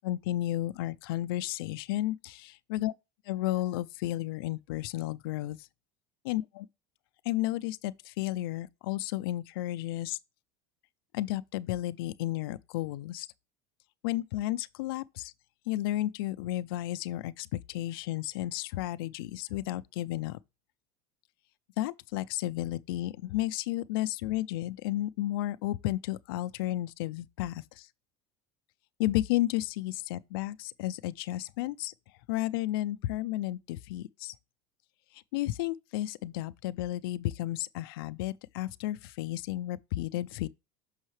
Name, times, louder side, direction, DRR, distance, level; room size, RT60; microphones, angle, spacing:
voice 1, 0.0-2.9 3.3-5.6 6.2-6.7 7.3-10.2 11.1-13.3 14.0-15.3 15.7-20.4 21.8-27.6 29.0-31.9 32.3-34.3 35.3-40.5, left 15 dB, 85° left, 0.4 m, -32 dB
6.4 x 5.5 x 3.1 m
supercardioid pair, 145°, 12 cm